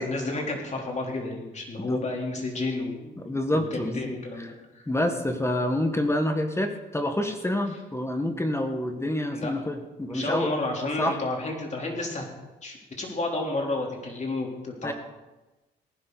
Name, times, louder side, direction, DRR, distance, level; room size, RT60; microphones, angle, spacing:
voice 1, 0.0-3.1 3.5-4.8 9.3-9.5 10.1-12.3 12.6-14.9, left 2 dB, 35° left, 0 dB, 3.8 m, -31 dB
voice 2, 3.2-4.5 4.9-10.5 11.0-11.2 14.8-14.9, left 1 dB, 15° left, 6 dB, 1.6 m, -27 dB
18.5 x 11.0 x 4.2 m, 1.1 s
cardioid pair, 90°, 20 cm